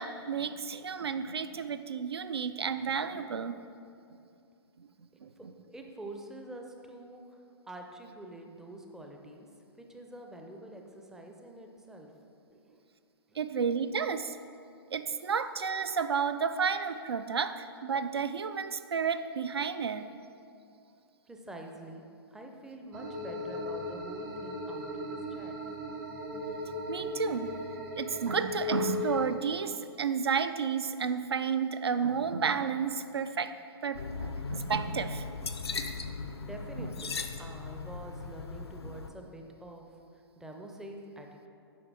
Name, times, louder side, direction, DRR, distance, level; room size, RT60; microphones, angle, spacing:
voice 1, 0.0-3.6 4.8-4.9 5.2-5.5 13.3-14.4 14.9-20.1 26.6-27.6 28.0-33.5 33.8-35.3 36.8-36.9, right 6 dB, 70° right, 11 dB, 0.4 m, -32 dB
voice 2, 5.4-9.5 9.8-12.1 12.5-12.8 13.3-13.4 21.3-25.6 36.4-39.8 40.1-41.5, right 1 dB, 5° right, 2 dB, 0.4 m, -46 dB
sound 1, 22.9-29.3, left 2 dB, 45° right, 1.1 m, -37 dB
sound 2, 33.9-39.1, left 4 dB, 75° left, 0.5 m, -38 dB
7.8 x 5.7 x 3.3 m, 2.5 s
figure-of-eight pair, 115°, 13 cm